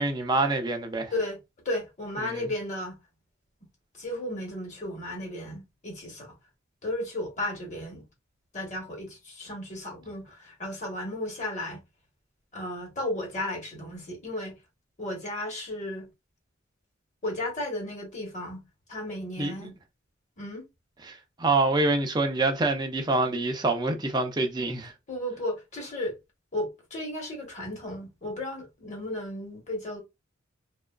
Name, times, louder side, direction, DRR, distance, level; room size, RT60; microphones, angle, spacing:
voice 1, 0.0-1.1 2.2-2.4 19.4-19.7 21.1-24.9, right 2 dB, 20° right, 0.5 m, -26 dB
voice 2, 1.6-3.0 3.9-6.4 6.8-8.0 8.5-11.8 12.5-14.6 15.0-16.1 17.2-18.6 18.9-19.7 20.4-20.6 25.1-26.2 26.5-30.0, left 1 dB, 35° left, 1.2 m, -34 dB
2.7 x 2.4 x 2.2 m
head